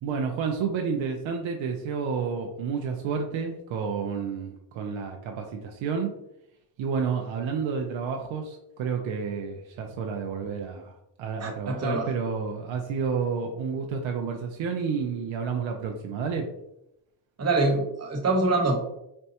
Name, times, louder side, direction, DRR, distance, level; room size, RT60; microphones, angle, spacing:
voice 1, 0.0-6.2 6.8-16.5, right 6 dB, 70° right, 2 dB, 0.6 m, -30 dB
voice 2, 11.4-12.1 17.4-19.0, right 2 dB, 30° right, 0 dB, 1.1 m, -25 dB
4.3 x 2.2 x 2.8 m, 0.83 s
cardioid pair, 75°, 48 cm